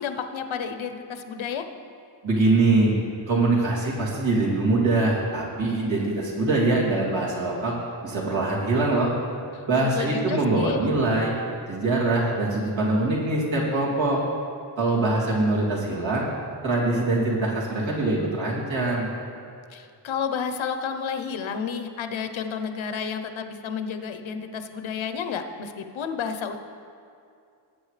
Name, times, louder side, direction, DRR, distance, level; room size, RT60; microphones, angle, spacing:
voice 1, 0.0-1.7 9.5-10.9 19.7-26.6, left 6 dB, 80° left, 7 dB, 0.9 m, -31 dB
voice 2, 2.2-2.9 3.3-7.7 8.0-9.1 9.7-11.3 11.7-14.2 14.8-16.3 16.6-19.1, right 2 dB, 75° right, -5 dB, 2.8 m, -23 dB
19.0 x 8.6 x 3.3 m, 2.4 s
wide cardioid pair, 160°, 46 cm